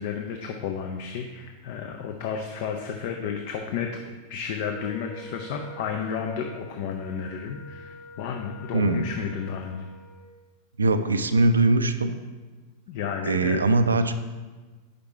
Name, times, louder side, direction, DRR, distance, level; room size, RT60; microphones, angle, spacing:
voice 1, 0.0-4.0 4.3-9.9 12.9-13.6, left 7 dB, 50° left, 3 dB, 0.4 m, -32 dB
Wind instrument woodwind instrument, 4.7-10.3, right 1 dB, 20° left, 0.7 m, -46 dB
voice 2, 8.7-9.0 10.8-12.1 13.2-14.1, right 2 dB, 75° right, 10 dB, 0.3 m, -21 dB
5.1 x 5.1 x 4.4 m, 1.3 s
figure-of-eight pair, 90°, 0 cm